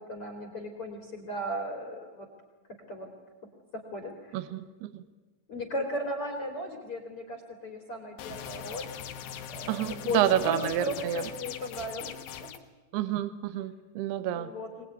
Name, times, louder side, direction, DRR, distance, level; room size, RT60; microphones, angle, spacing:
voice 1, 0.0-2.3 2.9-3.1 3.9-4.4 5.5-8.9 9.5-12.5 14.3-14.9, equal, 35° left, 4 dB, 3.2 m, -36 dB
voice 2, 4.3-5.0 9.7-11.2 12.9-14.5, right 12 dB, 70° right, 12 dB, 3.0 m, -29 dB
sound 1, 8.2-12.6, left 9 dB, 70° left, 3.1 m, -41 dB
25.0 x 19.5 x 9.5 m, 1.3 s
omnidirectional pair, 5.2 m